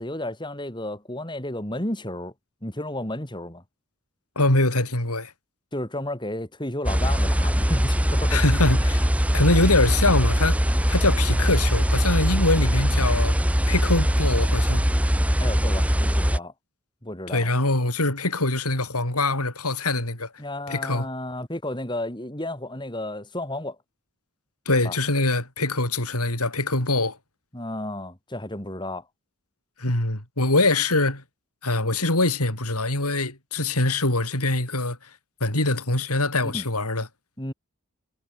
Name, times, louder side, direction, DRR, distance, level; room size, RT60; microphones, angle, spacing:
voice 1, 0.0-2.3 2.6-3.6 5.7-8.4 15.4-16.5 17.0-17.5 20.4-23.8 24.8-25.0 27.5-29.0 36.4-36.7 37.4-37.5, left 1 dB, 20° left, 3.8 m, -32 dB
voice 2, 4.4-5.3 8.3-9.1 9.3-10.6 10.9-13.4 13.7-14.8 17.3-20.3 20.7-21.1 24.7-27.2 29.8-31.2 31.6-35.0 35.4-37.1, left 2 dB, 90° left, 7.2 m, -23 dB
sound 1, 6.9-16.4, equal, 5° right, 1.9 m, -21 dB
head